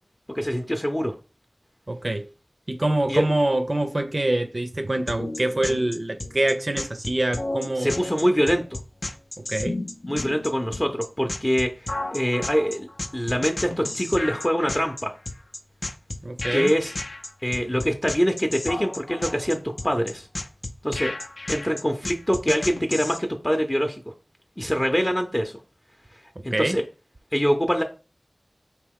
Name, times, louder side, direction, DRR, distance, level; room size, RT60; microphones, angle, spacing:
voice 1, 0.3-1.1 3.1-3.2 7.8-8.6 10.1-15.1 16.5-16.9 17.4-19.6 19.8-20.3 20.8-21.1 21.5-24.0 24.6-25.5 26.4-26.8 27.3-27.8, equal, 20° left, 0.6 m, -24 dB
voice 2, 1.9-2.3 2.7-7.9 9.4-9.8 16.2-16.7 26.5-26.8, right 1 dB, 50° right, 0.5 m, -25 dB
sound 1, 5.1-23.2, left 2 dB, 65° left, 0.5 m, -33 dB
4.4 x 2.9 x 3.6 m
wide cardioid pair, 40°, 0 cm